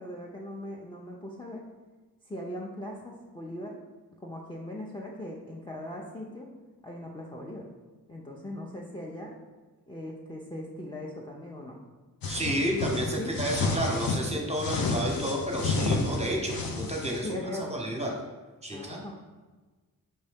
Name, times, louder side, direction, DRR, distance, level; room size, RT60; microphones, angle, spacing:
voice 1, 0.0-1.6 2.2-3.8 4.2-6.5 6.8-7.7 8.1-9.3 9.9-11.8 13.2-13.4 17.2-17.9 18.7-19.1, left 1 dB, 15° left, -3 dB, 0.5 m, -39 dB
sound 1, 12.2-14.2 14.5-17.2, left 3 dB, 65° left, 0.7 m, -30 dB
voice 2, 12.3-17.3 17.7-18.1 18.6-19.1, equal, 15° right, 0 dB, 0.9 m, -31 dB
5.3 x 2.6 x 3.4 m, 1.3 s
cardioid pair, 65°, 38 cm